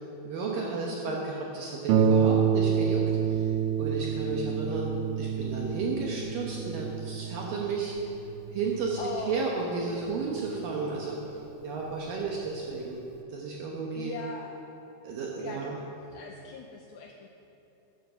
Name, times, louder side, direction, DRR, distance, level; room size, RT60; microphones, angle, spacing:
voice 1, 0.2-3.5 3.8-8.1 8.5-9.0 9.3-11.4 11.6-13.0 13.3-14.1 15.0-15.8, right 4 dB, 70° right, -2 dB, 2.3 m, -33 dB
voice 2, 0.9-1.2 9.0-9.5 13.9-14.6 15.4-15.8 16.1-17.3, left 5 dB, 90° left, 2 dB, 2.1 m, -40 dB
Harp, 1.9-11.1 11.9-12.0 12.5-12.6, right 7 dB, 85° right, 3.0 m, -28 dB
11.0 x 9.4 x 6.8 m, 3.0 s
omnidirectional pair, 5.1 m